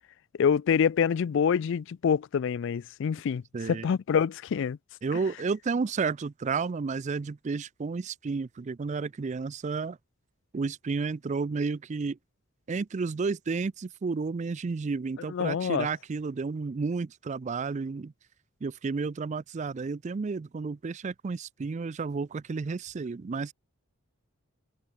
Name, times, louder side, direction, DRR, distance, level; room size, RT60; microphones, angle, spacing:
voice 1, 0.4-4.8 15.3-15.9, left 7 dB, 60° left, 0.3 m, -26 dB
voice 2, 3.5-3.9 5.0-10.0 10.5-12.2 12.7-18.1 18.6-23.5, right 4 dB, 35° right, 0.4 m, -31 dB
head